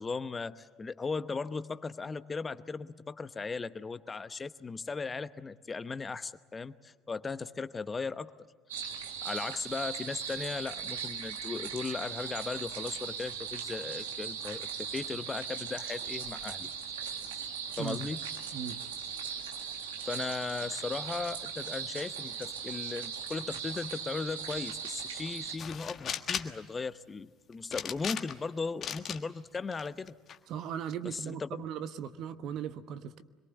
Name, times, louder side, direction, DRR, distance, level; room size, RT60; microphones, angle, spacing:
voice 1, 0.0-8.3 9.2-16.7 17.8-18.2 20.0-30.1 31.0-31.6, left 4 dB, 25° left, 14 dB, 0.9 m, -37 dB
sound 1, 8.7-25.6, right 7 dB, 75° right, 1.9 m, -39 dB
voice 2, 17.8-18.1 18.5-18.8 30.5-33.2, right 8 dB, 55° right, 12 dB, 1.1 m, -38 dB
sound 2, 25.6-26.6 27.7-28.5 28.8-29.2 29.7-30.4, left 8 dB, 45° left, 1.5 m, -36 dB
25.5 x 22.5 x 8.2 m, 1.5 s
figure-of-eight pair, 60°, 0 cm